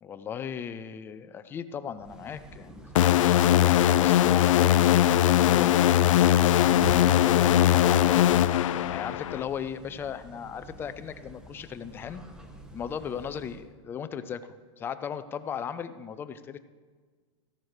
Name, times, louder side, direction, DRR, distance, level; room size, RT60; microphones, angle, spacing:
voice 1, 0.0-8.2 8.9-12.2 12.7-14.4 14.8-16.6, left 8 dB, 15° left, 12 dB, 0.4 m, -37 dB
sound 1, 1.9-13.7, right 1 dB, 5° right, 0.8 m, -44 dB
sound 2, 3.0-9.4, left 12 dB, 80° left, 0.4 m, -20 dB
14.5 x 10.5 x 4.8 m, 1.5 s
supercardioid pair, 160°, 16 cm